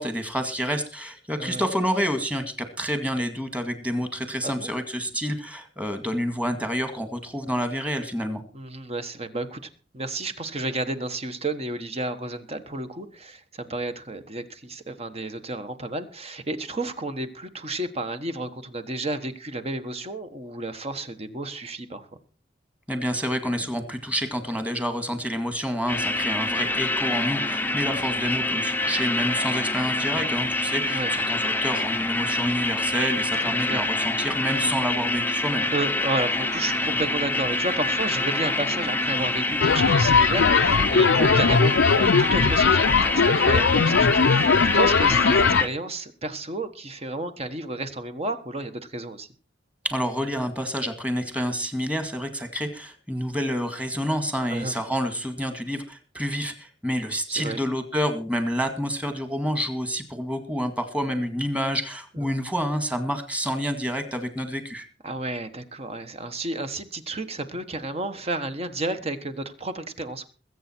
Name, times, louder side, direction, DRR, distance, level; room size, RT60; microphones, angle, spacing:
voice 1, 0.0-8.4 22.9-35.7 49.8-64.9, equal, 5° right, 8 dB, 2.0 m, -28 dB
voice 2, 8.5-22.1 26.0-26.1 30.9-31.1 33.7-33.9 35.7-49.3 54.5-54.7 57.3-57.6 62.2-62.4 65.0-70.3, right 2 dB, 35° right, 9 dB, 1.3 m, -32 dB
sound 1, 25.9-45.7, left 2 dB, 10° left, 0.7 m, -26 dB
sound 2, 39.6-45.6, left 5 dB, 75° left, 0.5 m, -19 dB
21.0 x 8.3 x 4.5 m, 0.37 s
head